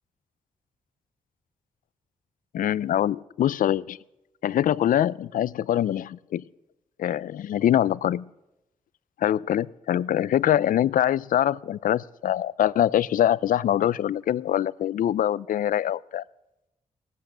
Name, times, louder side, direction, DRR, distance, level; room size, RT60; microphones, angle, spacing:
voice 1, 2.5-4.0 4.4-6.5 7.0-8.3 9.2-16.2, left 11 dB, 85° left, 0.4 m, -24 dB
17.5 x 12.0 x 6.7 m
cardioid pair, 100°, 14 cm